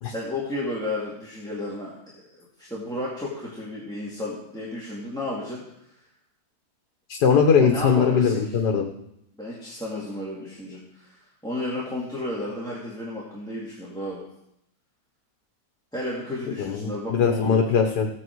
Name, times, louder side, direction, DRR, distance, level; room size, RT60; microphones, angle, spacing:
voice 1, 0.0-5.6 5.9-6.0 7.6-8.6 9.3-14.2 15.9-17.6, left 1 dB, ahead, -6 dB, 2.5 m, -33 dB
voice 2, 7.1-8.8 16.6-18.1, left 6 dB, 85° left, 3 dB, 1.6 m, -20 dB
16.0 x 8.3 x 4.7 m, 0.77 s
omnidirectional pair, 1.7 m